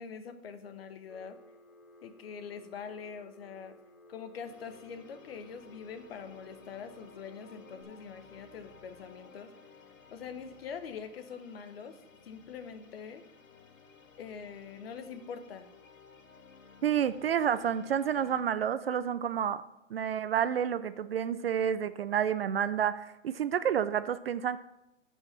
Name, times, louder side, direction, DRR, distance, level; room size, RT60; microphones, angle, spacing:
voice 1, 0.0-1.4 2.0-3.8 4.1-9.5 10.1-12.0 12.2-13.2 14.2-15.7, left 6 dB, 50° left, 10 dB, 1.0 m, -44 dB
Telephone, 1.1-7.8, left 1 dB, 15° left, 0.7 m, -57 dB
sound 1, 4.4-18.4, left 5 dB, 85° left, 1.4 m, -56 dB
voice 2, 16.8-19.6 19.9-24.6, right 9 dB, 50° right, 14 dB, 0.4 m, -29 dB
9.4 x 5.6 x 5.7 m, 0.93 s
hypercardioid pair, 160°, 38 cm